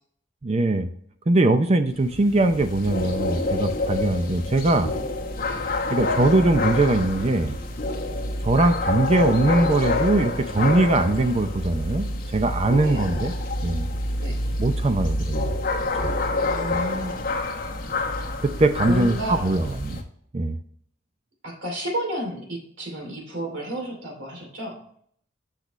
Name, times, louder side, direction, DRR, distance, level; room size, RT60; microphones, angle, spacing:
voice 1, 0.4-0.9 1.3-4.9 5.9-7.6 8.4-13.3 13.6-13.9 14.6-15.5 16.0-16.1 16.7-16.8 18.4-20.0 20.3-20.6, right 2 dB, 35° right, 9 dB, 0.5 m, -21 dB
sound 1, 1.9-20.0, left 2 dB, 50° left, 1.2 m, -27 dB
voice 2, 16.4-17.3 18.9-19.6 21.4-24.8, equal, 75° right, 1 dB, 2.8 m, -31 dB
6.7 x 6.0 x 3.1 m, 0.62 s
head